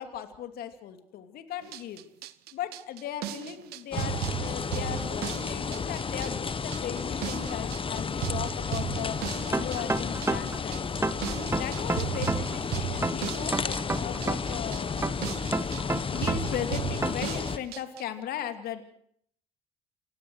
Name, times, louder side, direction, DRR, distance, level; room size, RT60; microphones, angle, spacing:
voice 1, 0.0-2.0 2.5-9.2 9.5-10.8 11.6-15.1 16.1-18.8, left 9 dB, 60° left, 8 dB, 2.8 m, -37 dB
sound 1, 1.6-18.0, right 15 dB, 65° right, 1.2 m, -36 dB
sound 2, 3.9-17.6, left 5 dB, 30° left, 1.5 m, -32 dB
sound 3, 9.5-10.6 11.0-12.6 13.0-14.6 15.0-16.6 17.0-17.3, right 2 dB, 15° right, 1.9 m, -29 dB
28.5 x 17.0 x 6.4 m, 0.64 s
hypercardioid pair, 60°, 17 cm